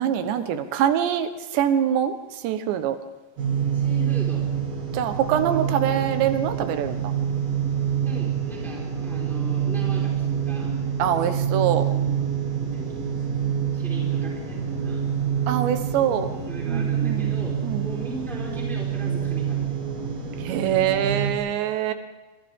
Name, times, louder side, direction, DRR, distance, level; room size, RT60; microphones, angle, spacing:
voice 1, 0.0-3.0 4.9-7.1 11.0-11.9 15.5-16.3 16.7-17.3 17.6-17.9 20.4-21.9, right 9 dB, 85° right, 9 dB, 3.4 m, -24 dB
sound 1, 3.4-21.3, right 8 dB, 40° right, 3.8 m, -26 dB
voice 2, 3.7-4.5 8.0-10.7 11.9-13.0 13.7-15.0 16.5-19.7, right 1 dB, ahead, -3 dB, 4.0 m, -39 dB
27.5 x 26.5 x 3.7 m, 1.2 s
omnidirectional pair, 5.0 m